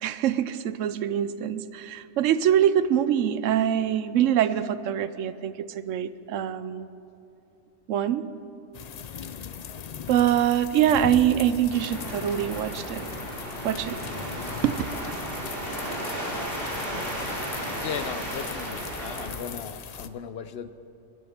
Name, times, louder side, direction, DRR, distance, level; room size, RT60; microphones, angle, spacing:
voice 1, 0.0-6.9 7.9-8.2 10.1-13.1 13.6-14.0 14.6-14.8, right 10 dB, 75° right, 14 dB, 0.9 m, -24 dB
sound 1, 8.7-20.1, left 7 dB, 90° left, 0.3 m, -39 dB
sound 2, 11.7-19.3, right 1 dB, 45° right, 3.1 m, -34 dB
voice 2, 17.8-20.7, left 7 dB, 60° left, 11 dB, 0.8 m, -36 dB
21.5 x 8.5 x 5.8 m, 2.7 s
omnidirectional pair, 1.4 m